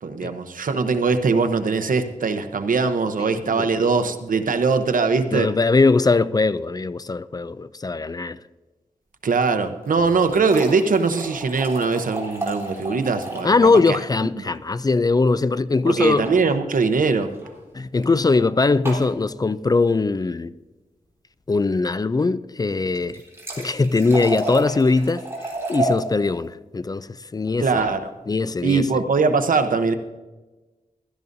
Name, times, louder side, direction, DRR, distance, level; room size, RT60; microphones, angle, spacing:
voice 1, 0.0-5.5 9.2-14.0 14.4-14.5 15.9-17.3 27.6-28.1 28.6-29.9, right 4 dB, 85° right, 0.8 m, -21 dB
voice 2, 3.2-3.7 5.3-8.4 13.4-16.3 17.7-20.5 21.5-23.2 23.6-25.2 25.7-27.1 27.3-27.7 28.3-28.8, left 3 dB, 30° left, 0.3 m, -20 dB
sound 1, 9.8-13.6 13.9-14.0 14.2-14.3 16.0-16.4 17.3-17.5 18.9-19.1 22.9-26.0 27.5-27.9, right 1 dB, 20° right, 3.7 m, -31 dB
16.0 x 12.5 x 2.7 m
wide cardioid pair, 105°, 14 cm